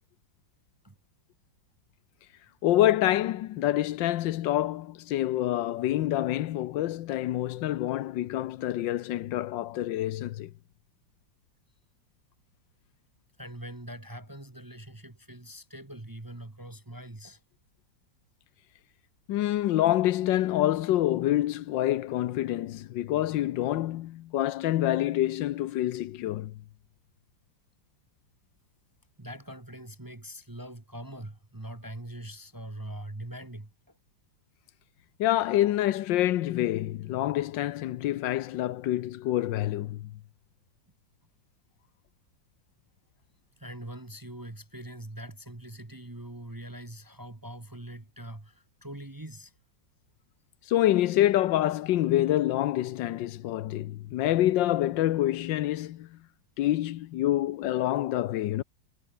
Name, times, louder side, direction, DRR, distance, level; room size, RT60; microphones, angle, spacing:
voice 1, 2.6-10.5 19.3-26.5 35.2-40.1 50.7-56.2 56.6-58.6, left 13 dB, 80° left, 1.4 m, -27 dB
voice 2, 13.4-17.4 29.2-33.7 43.6-49.5, right 1 dB, 15° right, 1.1 m, -42 dB
omnidirectional pair, 2.0 m